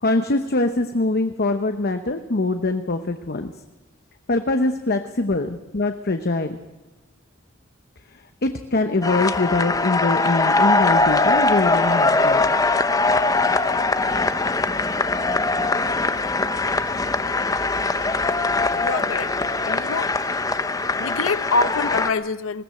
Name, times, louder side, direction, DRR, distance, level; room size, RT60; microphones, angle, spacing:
voice 1, 0.0-3.5 4.3-6.6 8.1-12.4, left 2 dB, 50° left, 7 dB, 0.9 m, -23 dB
sound 1, 9.0-22.1, left 3 dB, 15° left, 0.7 m, -21 dB
voice 2, 18.8-19.3 19.6-20.1 21.0-22.6, left 4 dB, 80° left, 14 dB, 0.8 m, -25 dB
20.5 x 17.0 x 7.7 m, 1.1 s
head